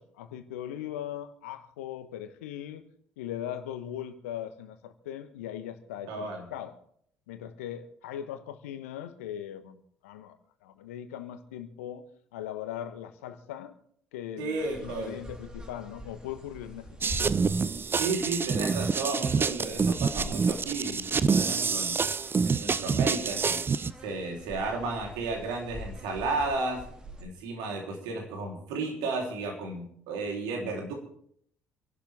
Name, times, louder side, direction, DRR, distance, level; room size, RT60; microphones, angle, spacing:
voice 1, 0.0-2.8 3.2-6.8 7.3-10.4 10.6-12.0 12.3-13.7 14.1-17.3, left 10 dB, 75° left, 10 dB, 1.2 m, -39 dB
voice 2, 6.0-6.5 14.4-15.2 17.9-22.0 22.4-23.6 24.0-26.8 27.2-30.9, right 3 dB, 65° right, 2 dB, 3.5 m, -33 dB
sound 1, 14.6-27.2, equal, 10° right, 2.9 m, -45 dB
sound 2, 17.0-23.9, right 5 dB, 30° right, 0.6 m, -27 dB
26.5 x 11.5 x 3.5 m, 0.65 s
figure-of-eight pair, 50°, 8 cm